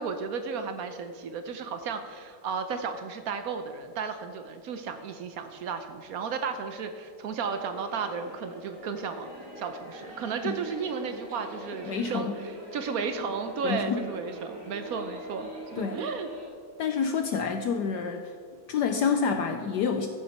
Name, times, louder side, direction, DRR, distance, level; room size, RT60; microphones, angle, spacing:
voice 1, 0.0-9.3 9.6-16.3, right 5 dB, 80° right, 8 dB, 0.8 m, -34 dB
sound 1, 7.4-16.5, equal, 40° right, 2.4 m, -44 dB
voice 2, 11.9-12.4 13.6-14.0 15.8-16.0 16.8-18.3 18.7-20.1, left 6 dB, 75° left, 6 dB, 1.0 m, -28 dB
14.0 x 7.7 x 4.2 m, 2.3 s
omnidirectional pair, 2.3 m